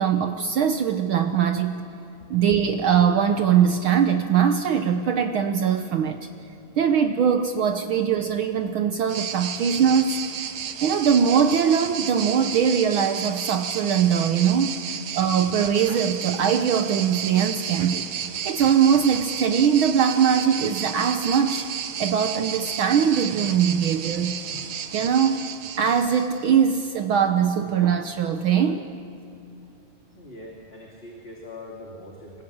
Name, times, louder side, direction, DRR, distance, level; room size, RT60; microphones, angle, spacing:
voice 1, 0.0-1.9 2.3-6.2 6.8-10.2 10.8-14.7 15.1-18.1 18.4-21.7 22.0-24.4 24.9-25.5 25.8-28.8, right 7 dB, 85° right, 7 dB, 1.1 m, -21 dB
sound 1, 9.1-26.5, right 8 dB, 65° right, 1.4 m, -32 dB
voice 2, 30.1-32.4, left 1 dB, 20° left, -2 dB, 2.4 m, -42 dB
25.0 x 20.5 x 8.7 m, 2.6 s
omnidirectional pair, 3.4 m